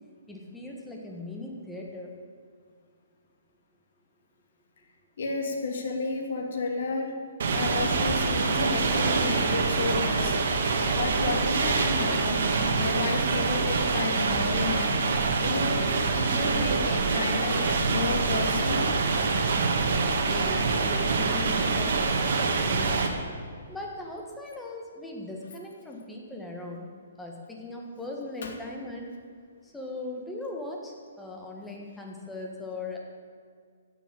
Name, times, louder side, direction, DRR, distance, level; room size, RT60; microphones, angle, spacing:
voice 1, 0.3-2.1 8.2-8.3 20.2-23.1 23.7-26.9 27.2-29.1 29.6-33.0, left 2 dB, 5° left, -1 dB, 1.6 m, -39 dB
voice 2, 5.2-7.2 7.5-10.5 10.9-12.4 12.7-15.0 15.4-18.9 20.5-20.6 28.4-28.5, left 3 dB, 55° left, 2 dB, 2.6 m, -32 dB
sound 1, 7.4-23.1, right 4 dB, 50° right, 1.9 m, -25 dB
15.5 x 7.1 x 8.8 m, 2.1 s
hypercardioid pair, 170°, 0 cm